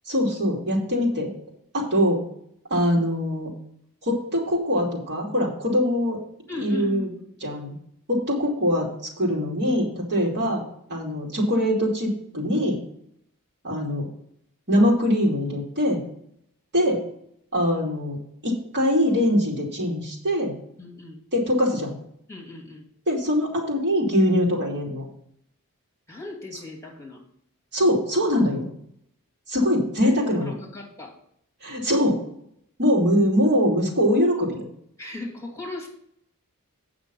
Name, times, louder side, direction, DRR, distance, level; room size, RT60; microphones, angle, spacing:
voice 1, 0.1-1.3 1.7-2.2 2.7-3.5 4.0-6.2 6.6-7.1 7.4-7.7 8.1-8.9 9.2-10.6 10.9-12.8 13.6-14.1 14.7-16.0 16.7-17.0 17.5-20.5 21.3-21.9 23.1-25.1 27.7-28.7 29.5-30.5 31.6-32.2 32.8-34.7, equal, 50° right, -2 dB, 2.8 m, -22 dB
voice 2, 6.5-7.6 20.8-21.2 22.3-22.9 26.1-27.2 30.0-31.2 35.0-35.9, left 2 dB, 15° left, -1 dB, 2.4 m, -37 dB
8.8 x 6.1 x 5.5 m, 0.69 s
head